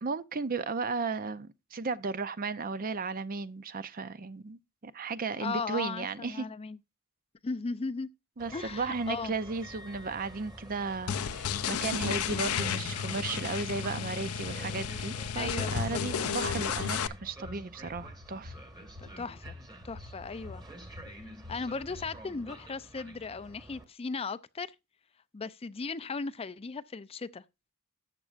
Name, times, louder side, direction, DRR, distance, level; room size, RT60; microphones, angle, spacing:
voice 1, 0.0-6.5 8.4-18.5, right 4 dB, 40° right, 0.6 m, -35 dB
voice 2, 5.4-6.8 7.4-8.1 8.5-9.3 15.3-16.4 19.0-19.6 19.8-20.6 21.5-24.7 25.3-27.4, left 4 dB, 25° left, 0.4 m, -37 dB
Train, 8.4-23.8, right 1 dB, 20° right, 1.7 m, -49 dB
sound 1, 11.1-17.1, left 7 dB, 85° left, 0.6 m, -32 dB
sound 2, 14.4-22.1, left 2 dB, 75° right, 2.5 m, -48 dB
13.5 x 9.1 x 2.5 m
head